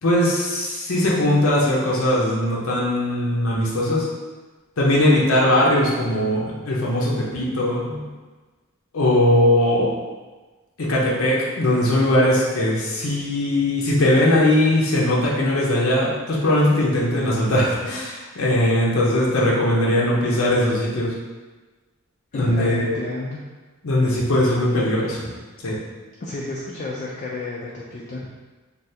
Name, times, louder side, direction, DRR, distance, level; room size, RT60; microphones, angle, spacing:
voice 1, 0.0-4.1 4.8-8.0 8.9-9.9 10.8-21.1 22.3-23.0 23.8-25.3 25.6-25.8, left 1 dB, 70° left, -5 dB, 0.6 m, -20 dB
voice 2, 22.3-23.4 26.2-28.3, left 2 dB, 35° left, -4 dB, 0.3 m, -31 dB
3.3 x 2.3 x 2.7 m, 1.3 s
head